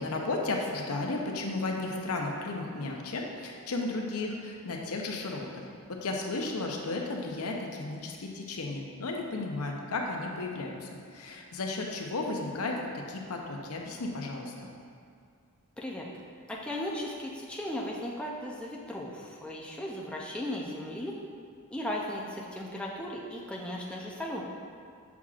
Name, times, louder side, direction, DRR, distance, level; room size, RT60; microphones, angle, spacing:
voice 1, 0.0-12.8 13.1-14.7, left 2 dB, 85° left, 1 dB, 0.7 m, -34 dB
voice 2, 15.8-16.1 16.5-21.1 21.7-24.4, left 1 dB, 5° left, -3 dB, 0.5 m, -36 dB
7.1 x 6.1 x 2.4 m, 2.2 s
head